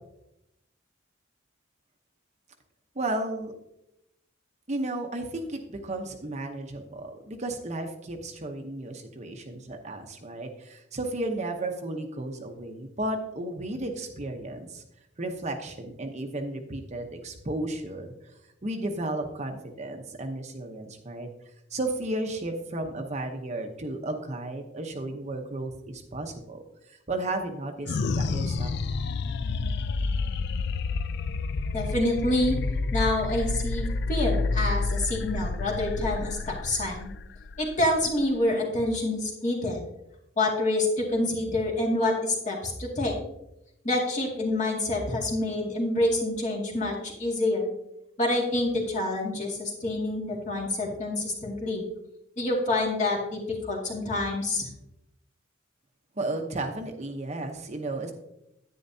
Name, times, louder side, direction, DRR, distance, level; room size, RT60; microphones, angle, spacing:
voice 1, 2.9-3.5 4.7-14.8 15.2-18.1 18.6-21.3 21.7-28.7 56.2-58.1, right 2 dB, 35° right, 4 dB, 0.9 m, -33 dB
sound 1, 27.9-38.5, left 3 dB, 55° left, 0.4 m, -29 dB
voice 2, 31.7-32.6 32.9-37.1 37.6-39.8 40.4-43.2 43.8-47.7 48.2-51.8 52.4-54.6, left 2 dB, 40° left, -2 dB, 2.2 m, -27 dB
10.5 x 9.4 x 2.7 m, 0.85 s
head